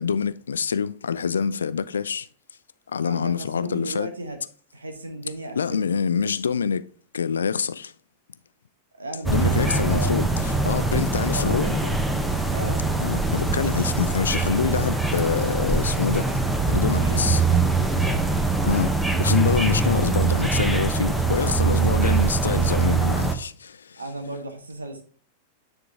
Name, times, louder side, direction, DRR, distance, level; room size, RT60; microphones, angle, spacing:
voice 1, 0.0-2.3 2.9-4.1 5.6-6.8 7.1-7.9 9.3-11.7 13.0-16.4 16.7-17.4 18.6-18.9 19.2-24.0, left 6 dB, 70° left, 0.4 m, -26 dB
voice 2, 3.0-4.4 4.7-5.9 9.0-10.6 11.3-11.9 12.5-12.8 16.9-18.3 21.8-21.9 22.2-22.3 24.0-25.0, right 1 dB, 75° right, 1.2 m, -35 dB
sound 1, 9.2-23.4, right 3 dB, 5° right, 0.8 m, -23 dB
9.5 x 3.8 x 3.5 m
figure-of-eight pair, 90°, 0 cm